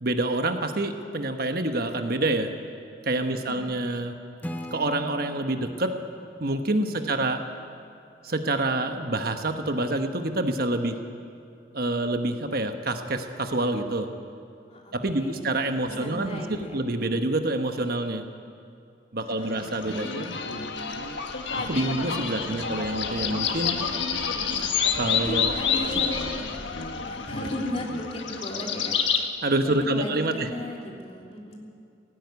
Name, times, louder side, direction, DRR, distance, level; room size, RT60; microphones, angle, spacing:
voice 1, 0.0-2.5 3.0-4.2 4.7-6.0 6.4-7.5 8.2-11.0 11.7-14.1 14.9-18.2 19.1-20.1 21.6-23.8 24.9-25.5 29.4-30.5, right 2 dB, 55° right, 6 dB, 1.3 m, -27 dB
voice 2, 3.3-3.7 14.7-15.5 15.7-16.8 19.2-20.1 22.4-22.7 25.1-26.4 27.1-29.0 29.6-31.6, left 1 dB, 35° left, -1 dB, 3.2 m, -36 dB
Acoustic guitar / Strum, 4.4-8.0, equal, 10° left, 1.0 m, -41 dB
sound 1, 19.6-29.2, left 6 dB, 90° left, 1.5 m, -28 dB
17.5 x 16.0 x 9.6 m, 2.5 s
head